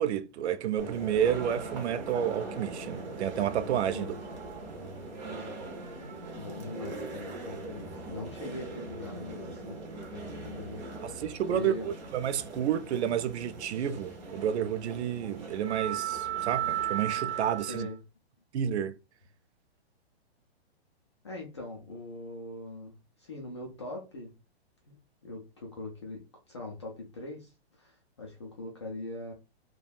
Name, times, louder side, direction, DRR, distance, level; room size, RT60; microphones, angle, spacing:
voice 1, 0.0-4.1 11.0-17.9 18.5-19.0, right 9 dB, 85° right, 0.5 m, -30 dB
sound 1, 0.8-17.9, right 6 dB, 40° right, 0.8 m, -38 dB
voice 2, 6.3-11.1 11.5-11.9 17.7-18.0 21.2-24.3 24.8-25.0 25.2-29.3, left 2 dB, 30° left, 0.4 m, -42 dB
3.4 x 2.2 x 2.3 m
hypercardioid pair, 170°, 33 cm